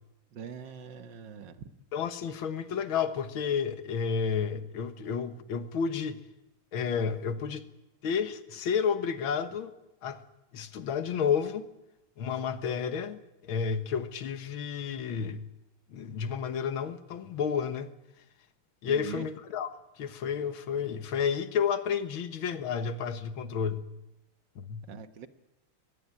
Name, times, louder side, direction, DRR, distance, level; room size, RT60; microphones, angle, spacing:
voice 1, 0.3-1.7 18.9-19.3 24.9-25.3, right 7 dB, 60° right, 1.8 m, -42 dB
voice 2, 1.9-6.2 6.7-7.6 8.0-9.7 10.0-10.2 10.5-11.7 12.2-15.5 15.9-17.9 18.8-23.9 24.6-24.9, left 7 dB, 70° left, 2.1 m, -31 dB
22.5 x 18.0 x 9.8 m
omnidirectional pair, 2.4 m